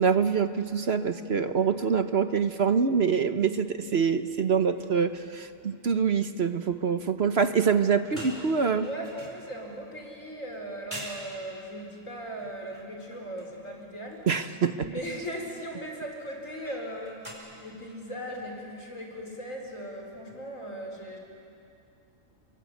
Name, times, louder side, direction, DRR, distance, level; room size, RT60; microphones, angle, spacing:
voice 1, 0.0-8.9 14.3-14.8, right 6 dB, 55° right, 9 dB, 1.1 m, -25 dB
sound 1, 3.9-4.1 4.4-4.5 4.8-5.1 7.7-9.9 10.5-10.6 10.9-11.3 12.4-13.6 14.1-14.3 16.7-17.3, right 1 dB, 25° right, 5.0 m, -45 dB
voice 2, 8.8-14.3 14.7-21.2, equal, 70° left, 1 dB, 4.8 m, -38 dB
29.5 x 23.5 x 8.5 m, 2.6 s
omnidirectional pair, 1.4 m